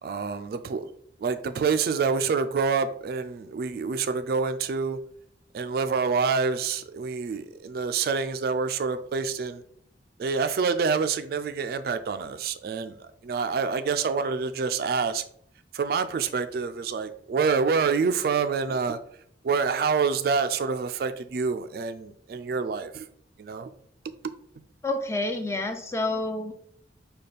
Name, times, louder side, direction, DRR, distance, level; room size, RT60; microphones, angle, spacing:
voice 1, 0.0-0.9 1.2-5.0 5.5-9.6 10.2-15.2 15.7-19.0 19.4-23.1 23.4-23.7 24.2-24.3, right 5 dB, 55° right, 0.3 m, -27 dB
voice 2, 24.8-26.5, left 2 dB, 15° left, 0.4 m, -28 dB
5.0 x 2.3 x 4.1 m
head